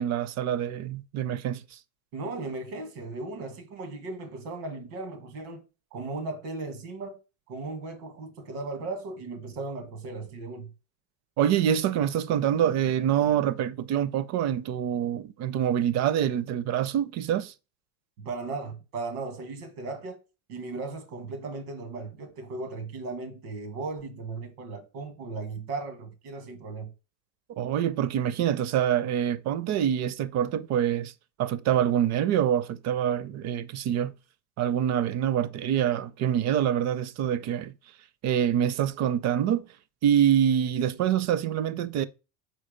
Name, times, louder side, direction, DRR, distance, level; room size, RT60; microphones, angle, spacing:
voice 1, 0.0-1.6 11.4-17.5 27.6-31.1 31.4-34.1 34.6-37.7 38.2-39.7 40.0-42.1, right 10 dB, 40° right, 0.5 m, -25 dB
voice 2, 2.1-5.7 5.9-7.2 7.5-10.7 18.2-20.2 20.5-26.9, right 3 dB, 85° right, 1.6 m, -36 dB
4.6 x 4.4 x 5.1 m
cardioid pair, 135°, 43 cm